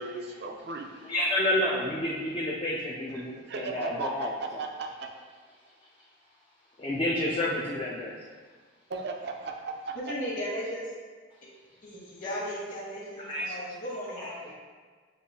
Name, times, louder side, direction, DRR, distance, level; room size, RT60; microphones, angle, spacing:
voice 1, 0.0-0.9 3.1-5.1 8.9-10.0, right 4 dB, 55° right, 3 dB, 0.4 m, -36 dB
voice 2, 1.0-4.6 6.8-8.1 13.2-13.6 14.2-14.5, left 1 dB, 25° left, -4 dB, 0.3 m, -30 dB
voice 3, 10.1-10.8 11.8-14.4, equal, 40° left, -8 dB, 1.1 m, -36 dB
6.5 x 2.7 x 2.8 m, 1.5 s
head